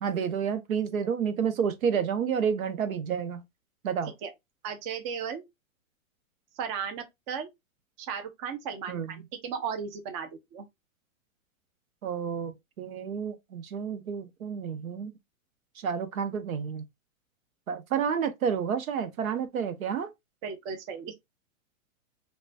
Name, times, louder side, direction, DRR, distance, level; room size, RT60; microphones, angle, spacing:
voice 1, 0.0-3.4 3.8-4.1 8.9-9.1 12.0-15.1 15.8-16.8 17.7-20.1, right 7 dB, 90° right, 0.7 m, -30 dB
voice 2, 4.6-5.4 6.6-7.5 8.0-10.7 20.4-21.1, right 7 dB, 25° right, 0.4 m, -35 dB
3.1 x 2.2 x 2.5 m
hypercardioid pair, 130°, 41 cm